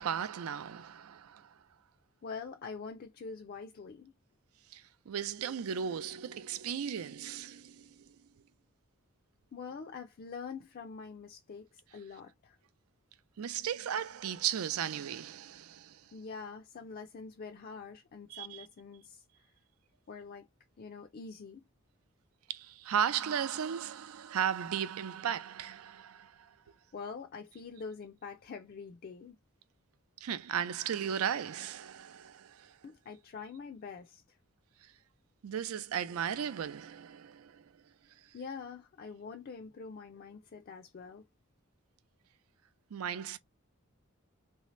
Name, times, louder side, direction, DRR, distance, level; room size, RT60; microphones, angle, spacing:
voice 1, 0.0-1.6 4.7-8.2 13.4-16.1 18.3-18.7 22.5-26.8 30.2-32.8 34.8-34.9 35.4-38.3 42.9-43.4, right 8 dB, 85° right, 0.4 m, -36 dB
voice 2, 2.2-4.1 9.5-12.6 16.1-19.2 20.1-20.5 20.8-21.6 26.9-29.4 32.8-34.4 38.3-41.3, left 5 dB, 45° left, 0.4 m, -45 dB
3.2 x 2.7 x 3.0 m
head